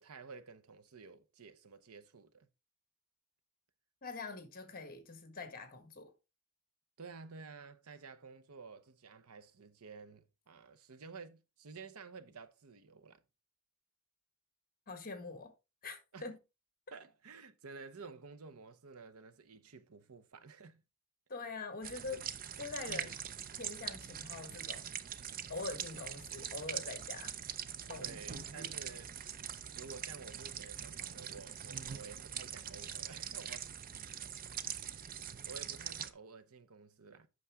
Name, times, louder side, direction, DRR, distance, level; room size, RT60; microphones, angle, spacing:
voice 1, 0.0-2.5 7.0-13.2 16.1-16.3 16.9-20.8 21.8-22.2 22.8-23.1 28.0-29.1 29.8-33.7 34.7-37.3, right 4 dB, 75° right, 0.8 m, -52 dB
voice 2, 4.0-6.1 14.9-15.5 15.8-16.4 21.3-22.3 22.6-23.1 23.5-24.9 25.5-27.3 27.9-28.1 28.3-28.7, left 3 dB, 40° left, 1.6 m, -44 dB
sound 1, 21.8-36.1, right 9 dB, 40° right, 0.5 m, -43 dB
8.5 x 6.2 x 3.6 m
head